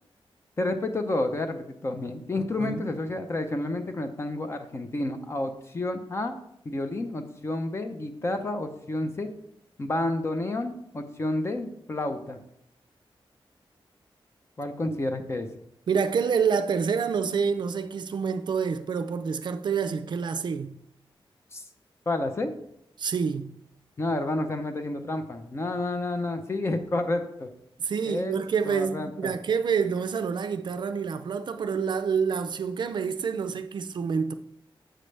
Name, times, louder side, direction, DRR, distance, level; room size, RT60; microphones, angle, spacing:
voice 1, 0.6-6.4 6.6-9.3 9.8-12.4 14.6-15.5 21.5-21.6 22.1-22.5 24.0-27.5 28.1-28.4 28.6-29.3, left 2 dB, 30° left, 0.6 m, -30 dB
voice 2, 15.9-20.7 23.0-23.5 27.8-34.3, right 6 dB, 55° right, 0.4 m, -27 dB
7.6 x 6.5 x 3.2 m
wide cardioid pair, 175°, 9 cm